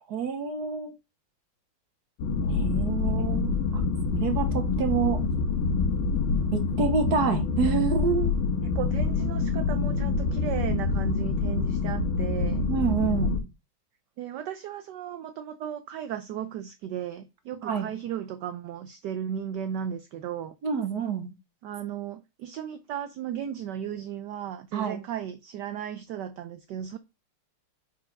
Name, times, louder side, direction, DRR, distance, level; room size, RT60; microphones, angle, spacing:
voice 1, 0.1-0.9 2.5-3.8 4.2-5.2 6.5-8.3 12.7-13.3 17.6-17.9 20.6-21.3 24.7-25.0, right 6 dB, 55° right, 1.4 m, -28 dB
sound 1, 2.2-13.4, left 4 dB, 80° left, 2.0 m, -26 dB
voice 2, 8.7-12.7 14.2-20.5 21.6-27.0, right 9 dB, 80° right, 0.9 m, -35 dB
4.7 x 4.7 x 5.2 m
omnidirectional pair, 2.3 m